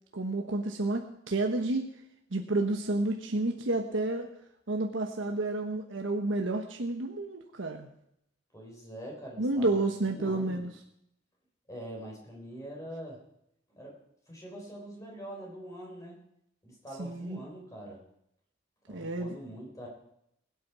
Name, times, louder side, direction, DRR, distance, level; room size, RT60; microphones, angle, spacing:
voice 1, 0.1-1.9 2.3-4.3 4.7-7.9 9.4-10.7 17.0-17.4 18.9-19.3, right 2 dB, 90° right, 3 dB, 1.2 m, -30 dB
voice 2, 8.5-10.7 11.7-13.2 13.8-16.2 16.6-18.0 18.9-19.9, right 1 dB, 15° left, -2 dB, 4.0 m, -44 dB
20.5 x 8.7 x 4.7 m, 0.77 s
head